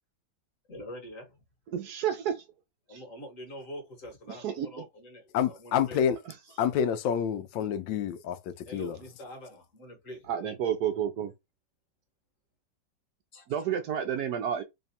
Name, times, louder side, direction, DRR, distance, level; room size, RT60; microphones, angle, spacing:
voice 1, 0.7-1.3 2.9-5.2 5.5-6.0 8.7-10.3 13.3-13.7, equal, 50° left, 1.6 m, -44 dB
voice 2, 1.7-2.4 4.3-4.9 10.3-11.3 13.5-14.6, right 9 dB, 70° right, 1.0 m, -30 dB
voice 3, 5.3-6.2 6.6-9.0, left 8 dB, 85° left, 1.3 m, -28 dB
3.4 x 2.3 x 4.0 m
omnidirectional pair, 2.0 m